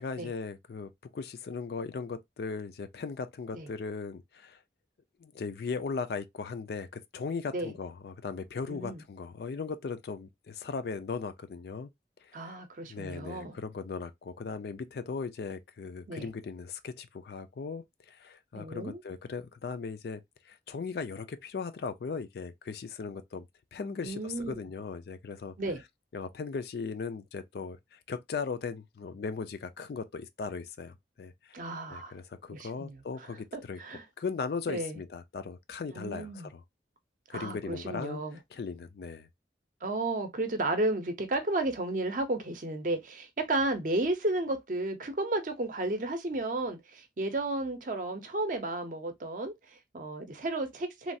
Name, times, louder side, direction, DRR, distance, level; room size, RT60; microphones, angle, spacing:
voice 1, 0.0-4.6 5.2-11.9 12.4-12.6 12.9-20.2 20.5-23.4 23.7-25.5 26.1-31.3 31.9-33.8 34.2-36.6 37.3-38.2 38.5-39.3, left 5 dB, 60° left, 0.3 m, -38 dB
voice 2, 8.7-9.0 12.3-13.6 16.1-16.3 18.5-19.0 24.0-24.6 25.6-25.8 31.5-32.2 32.5-33.3 33.5-34.0 34.7-35.0 35.9-36.5 37.3-38.4 39.8-51.1, right 2 dB, 45° right, 0.6 m, -33 dB
3.1 x 2.3 x 2.6 m
head